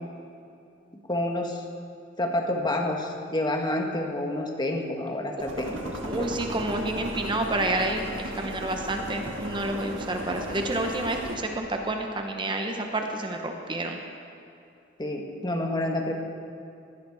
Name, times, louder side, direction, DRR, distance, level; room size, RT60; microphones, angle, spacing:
voice 1, 1.1-1.6 2.2-6.3 15.0-16.2, left 1 dB, 25° left, 1 dB, 1.4 m, -29 dB
sound 1, 5.4-11.4, right 1 dB, 90° right, 1.9 m, -36 dB
voice 2, 6.1-14.0, right 2 dB, 25° right, 3 dB, 0.9 m, -29 dB
17.0 x 11.5 x 4.8 m, 2.6 s
head